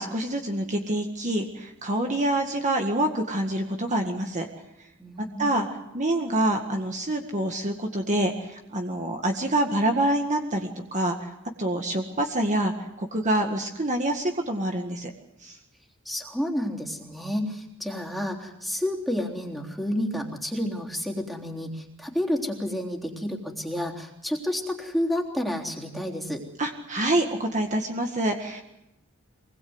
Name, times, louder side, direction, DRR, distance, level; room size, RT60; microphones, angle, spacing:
voice 1, 0.0-4.5 5.4-5.7 5.9-15.1 15.4-15.6 26.6-28.6, right 1 dB, 35° right, 3 dB, 1.9 m, -26 dB
voice 2, 5.0-5.5 16.1-26.4, left 1 dB, ahead, 0 dB, 3.5 m, -30 dB
24.5 x 20.5 x 8.0 m, 0.88 s
head